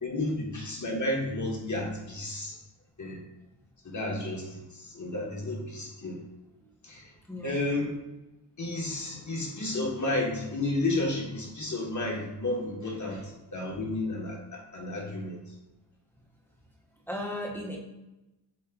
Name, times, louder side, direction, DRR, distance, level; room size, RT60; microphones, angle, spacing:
voice 1, 0.0-2.6 3.0-3.2 3.8-6.2 6.8-7.1 7.4-7.9 8.6-15.4, left 2 dB, 40° left, -2 dB, 1.3 m, -32 dB
voice 2, 17.1-17.8, left 1 dB, 5° left, -2 dB, 0.8 m, -35 dB
7.1 x 3.1 x 2.3 m, 0.96 s
wide cardioid pair, 120°, 45 cm